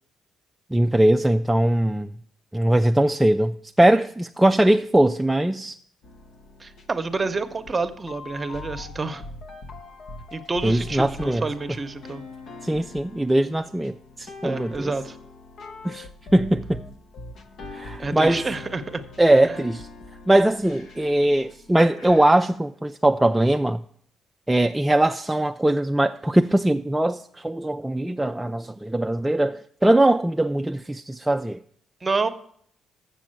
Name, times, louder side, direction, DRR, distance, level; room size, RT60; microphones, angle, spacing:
voice 1, 0.7-2.1 2.5-5.8 10.6-11.4 12.6-14.9 15.8-16.8 17.7-18.5 19.2-19.9 20.3-23.8 24.5-31.6, right 1 dB, 10° right, 0.3 m, -21 dB
sound 1, 6.0-21.7, left 2 dB, 65° left, 0.8 m, -42 dB
voice 2, 6.6-9.2 10.3-12.2 14.4-15.2 18.0-19.0 19.5-19.6 32.0-32.3, right 3 dB, 30° right, 0.8 m, -28 dB
Breathing, 20.6-21.2 21.9-22.5, left 1 dB, 85° left, 2.5 m, -48 dB
7.3 x 6.8 x 7.6 m
cardioid pair, 90°, 0 cm